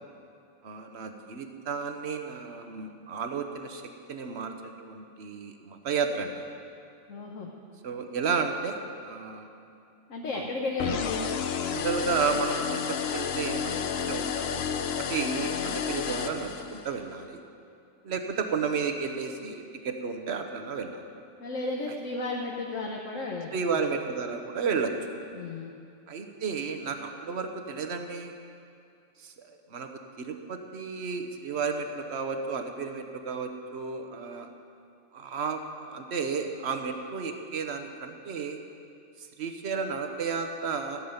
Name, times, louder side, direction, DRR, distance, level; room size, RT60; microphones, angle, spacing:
voice 1, 0.6-3.8 4.1-6.5 7.8-9.5 10.3-10.5 11.7-17.4 18.0-21.0 23.5-24.9 26.1-28.3 29.2-29.9 30.2-34.5 35.1-38.6 39.2-41.0, right 5 dB, 60° right, 5 dB, 1.3 m, -32 dB
voice 2, 7.1-7.5 10.1-11.3 21.4-23.5 23.8-23.9 25.3-25.7, left 2 dB, 80° left, -1 dB, 1.5 m, -33 dB
sound 1, 10.8-17.0, left 7 dB, 60° left, 0.9 m, -31 dB
15.5 x 7.4 x 9.6 m, 2.6 s
omnidirectional pair, 1.3 m